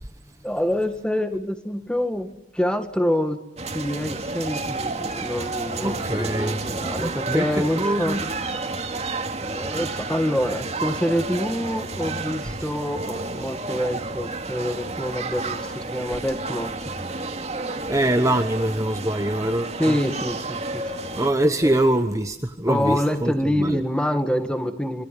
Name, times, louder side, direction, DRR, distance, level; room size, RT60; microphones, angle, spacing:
voice 1, 0.4-3.4 3.7-8.3 9.4-16.7 19.8-20.8 21.5-21.8 22.7-25.0, equal, 5° left, 8 dB, 1.7 m, -26 dB
sound 1, 3.6-21.3, right 3 dB, 35° right, 2.4 m, -31 dB
voice 2, 5.8-6.6 7.0-7.5 7.8-8.2 17.9-20.0 21.2-23.8, right 1 dB, 15° right, 7 dB, 1.2 m, -23 dB
26.5 x 25.0 x 8.4 m, 0.85 s
head